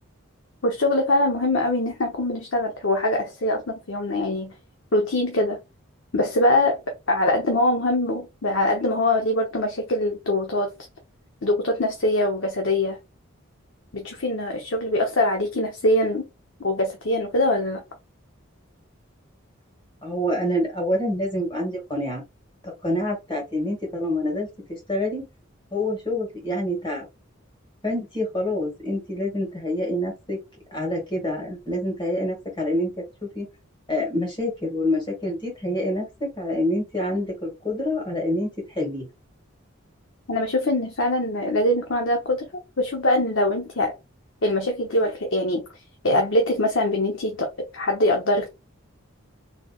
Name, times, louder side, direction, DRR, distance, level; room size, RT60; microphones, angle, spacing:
voice 1, 0.6-4.5 4.9-5.6 6.1-10.7 11.4-13.0 13.9-16.3 16.6-17.8 40.3-42.5 42.8-43.9 44.4-45.6 46.0-47.5 47.7-48.5, left 1 dB, 65° left, 0.9 m, -23 dB
voice 2, 20.0-22.2 22.8-24.5 24.9-25.2 25.7-27.1 27.8-30.4 30.7-33.5 33.9-38.5 38.7-39.0, left 1 dB, 25° left, 2.0 m, -26 dB
4.3 x 3.4 x 2.4 m
head